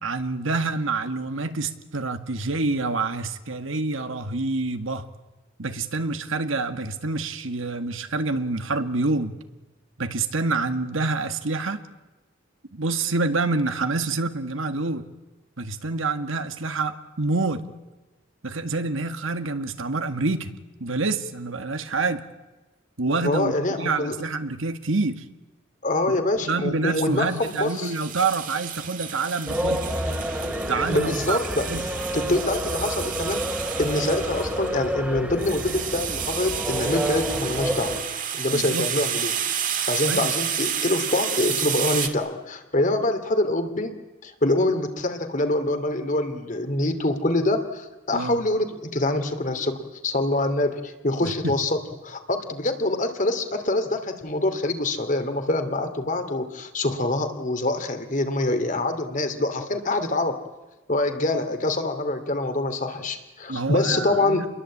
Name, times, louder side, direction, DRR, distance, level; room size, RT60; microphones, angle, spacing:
voice 1, 0.0-5.1 5.6-9.3 10.0-11.8 12.7-15.1 15.6-17.6 18.4-20.5 20.8-22.2 23.0-23.5 23.8-25.2 26.1-26.2 26.5-29.8 30.7-31.4 31.7-31.9 38.5-38.9 40.1-40.3 48.1-48.4 51.2-51.6 63.5-64.4, right 3 dB, 75° right, 8 dB, 1.9 m, -27 dB
voice 2, 23.2-24.1 25.8-27.9 30.9-31.7 32.1-33.4 33.8-38.0 38.3-39.4 39.9-43.9 44.2-51.8 52.0-60.4 60.9-64.5, left 2 dB, 40° left, 8 dB, 2.8 m, -25 dB
sound 1, 27.3-42.1, right 9 dB, 40° right, 2.4 m, -31 dB
sound 2, 29.5-38.0, equal, 5° right, 2.7 m, -29 dB
29.5 x 22.0 x 8.7 m, 1.1 s
head